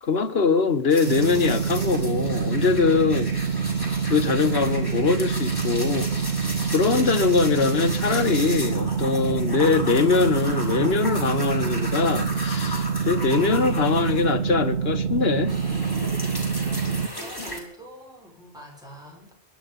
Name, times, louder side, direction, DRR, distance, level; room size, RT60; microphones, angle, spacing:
voice 1, 0.0-3.3 4.1-6.1 6.7-15.5, left 5 dB, 65° left, 1.6 m, -22 dB
sound 1, 0.9-14.7 15.0-17.6, left 1 dB, 20° left, 4.5 m, -36 dB
sound 2, 1.1-17.1, right 6 dB, 85° right, 1.5 m, -26 dB
voice 2, 16.7-19.3, right 1 dB, 5° right, 6.2 m, -45 dB
23.0 x 10.5 x 5.4 m
omnidirectional pair, 1.1 m